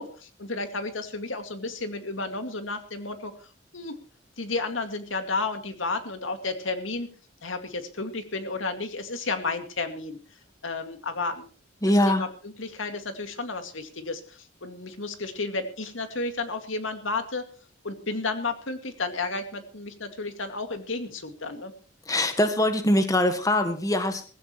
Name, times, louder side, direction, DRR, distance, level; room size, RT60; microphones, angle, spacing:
voice 1, 0.0-4.0 4.4-7.1 7.4-10.2 10.6-11.5 12.1-17.4 17.8-21.7, left 3 dB, 90° left, 7 dB, 2.3 m, -32 dB
voice 2, 11.8-12.2 22.1-24.2, left 1 dB, 20° left, 7 dB, 1.6 m, -22 dB
19.0 x 15.5 x 3.1 m, 0.38 s
head